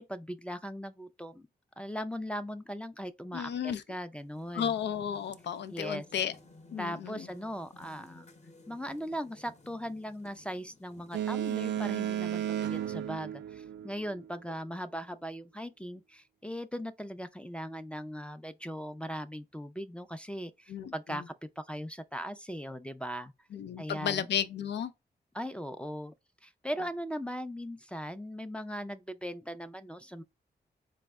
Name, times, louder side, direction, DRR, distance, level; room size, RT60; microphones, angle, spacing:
voice 1, 0.0-1.5 1.8-4.7 5.7-6.0 6.8-8.3 8.7-23.3 23.8-24.3 25.3-26.1 26.4-30.2, equal, 5° left, 0.4 m, -39 dB
voice 2, 3.3-3.8 4.5-6.3 6.7-7.3 20.7-21.2 23.5-24.9, left 9 dB, 90° left, 0.5 m, -33 dB
sound 1, 4.2-13.1, left 3 dB, 40° left, 0.8 m, -57 dB
Boat Water vehicle, 11.1-14.3, right 10 dB, 85° right, 0.4 m, -33 dB
4.2 x 2.1 x 3.4 m
cardioid pair, 85°, 18 cm